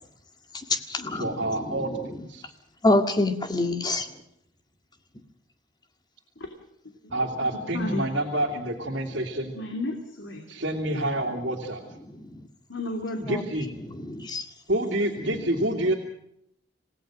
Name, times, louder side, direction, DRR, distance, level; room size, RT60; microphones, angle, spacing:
voice 1, 0.5-2.3 2.8-4.2 12.0-12.5 13.3-13.4 13.8-14.5 15.2-15.9, left 2 dB, 20° left, 6 dB, 2.0 m, -28 dB
voice 2, 1.1-2.4 7.1-9.5 10.5-12.0 13.2-13.7 14.7-15.9, right 1 dB, 65° right, -1 dB, 2.8 m, -28 dB
voice 3, 7.7-8.0 9.5-10.4 10.9-11.0 12.7-13.4, left 1 dB, 90° left, 4 dB, 3.0 m, -32 dB
27.5 x 17.5 x 6.4 m, 0.73 s
head